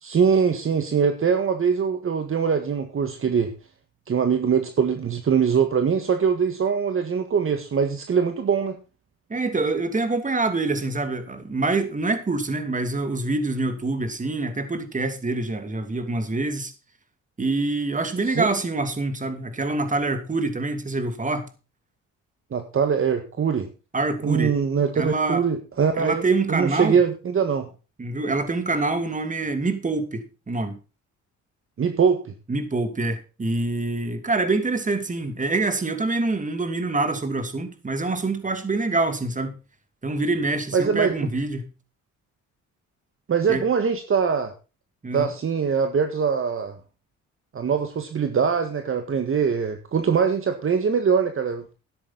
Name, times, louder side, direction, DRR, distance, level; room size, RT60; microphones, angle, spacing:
voice 1, 0.0-3.5 4.1-8.8 18.3-18.5 22.5-23.7 24.2-27.7 31.8-32.3 40.7-41.3 43.3-44.5 45.1-46.8 47.5-51.7, right 6 dB, 45° right, 1.7 m, -22 dB
voice 2, 9.3-16.7 17.4-21.5 23.9-24.5 24.9-25.4 26.0-27.0 28.0-30.8 32.5-39.5 40.0-41.7 43.5-43.6 45.0-45.3, right 3 dB, 25° right, 2.7 m, -25 dB
13.0 x 10.5 x 4.1 m
cardioid pair, 90°, 30 cm